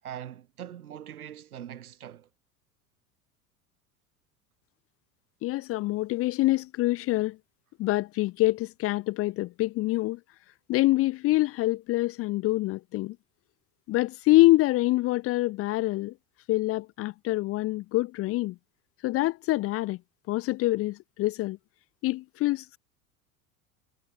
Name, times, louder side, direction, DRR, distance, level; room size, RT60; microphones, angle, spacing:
voice 1, 0.0-2.3, right 10 dB, 70° right, 7.3 m, -42 dB
voice 2, 5.4-7.3 7.8-10.2 10.7-13.1 13.9-16.1 16.5-18.5 19.0-20.0 20.3-21.6 22.0-22.8, left 18 dB, 30° left, 0.7 m, -25 dB
figure-of-eight pair, 75°, 46 cm